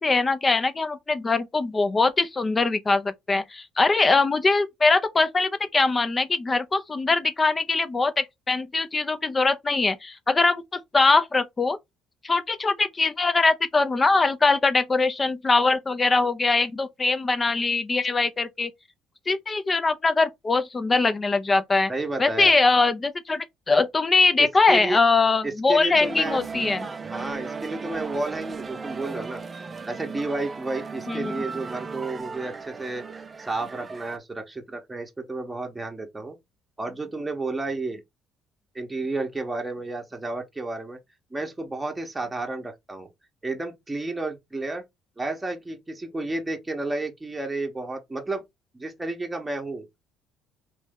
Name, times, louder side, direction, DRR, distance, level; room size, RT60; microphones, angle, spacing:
voice 1, 0.0-11.8 12.2-18.7 19.3-21.9 22.2-26.9 31.1-31.4, left 3 dB, 25° left, 0.6 m, -22 dB
voice 2, 21.9-22.5 24.4-25.0 25.4-26.4 27.0-29.4 29.8-33.0 33.4-36.3 36.8-38.0 38.7-41.0 41.3-43.1 43.4-44.8 45.2-48.4 48.7-49.9, right 2 dB, 15° right, 1.0 m, -31 dB
sound 1, 25.9-34.2, right 5 dB, 30° right, 0.4 m, -36 dB
3.1 x 2.6 x 3.6 m
cardioid pair, 95°, 0 cm